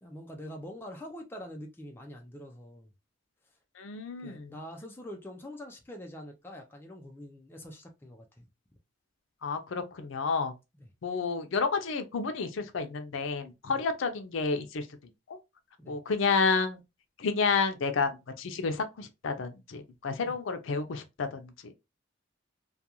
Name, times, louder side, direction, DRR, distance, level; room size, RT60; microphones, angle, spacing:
voice 1, 0.0-2.9 4.2-8.5 10.8-10.9 13.6-13.8 15.8-16.0 20.2-20.4, equal, 10° left, 0.4 m, -45 dB
voice 2, 3.8-4.5 9.4-10.5 11.0-14.9 15.3-15.4 15.9-16.8 17.2-21.7, left 4 dB, 80° left, 0.5 m, -30 dB
2.4 x 2.2 x 2.8 m
head